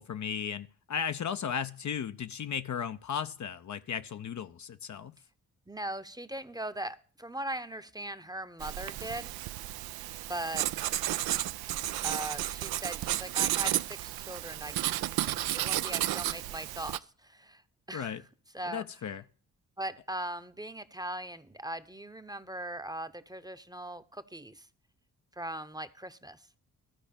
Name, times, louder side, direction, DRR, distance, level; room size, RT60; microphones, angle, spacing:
voice 1, 0.0-5.1 17.9-18.2 18.6-19.2, left 7 dB, 45° left, 10 dB, 0.7 m, -35 dB
voice 2, 5.7-9.3 10.3-10.7 12.0-14.8 15.4-17.6 17.9-18.2 18.5-18.8 19.8-24.7 25.4-26.4, right 1 dB, 10° right, 11 dB, 0.9 m, -39 dB
Writing, 8.6-17.0, right 14 dB, 65° right, 0.5 m, -32 dB
12.5 x 5.0 x 8.4 m, 0.41 s
hypercardioid pair, 40°, 40 cm